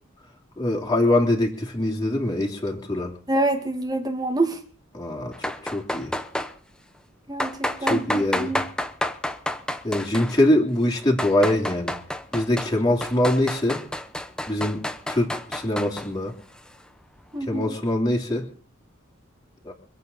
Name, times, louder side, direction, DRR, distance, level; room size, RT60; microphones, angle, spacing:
voice 1, 0.6-3.2 4.9-6.2 7.9-8.5 9.8-12.0 12.3-13.8 14.5-16.3 17.5-18.5 19.6-19.7, left 1 dB, 20° left, 0 dB, 3.0 m, -23 dB
voice 2, 3.3-4.6 7.3-8.6 17.3-17.8, right 2 dB, 20° right, 6 dB, 2.1 m, -26 dB
sound 1, 5.3-6.5 7.4-10.4 10.9-12.7 13.0-16.1, left 1 dB, 5° left, 0.9 m, -29 dB
25.5 x 8.4 x 5.4 m, 0.42 s
head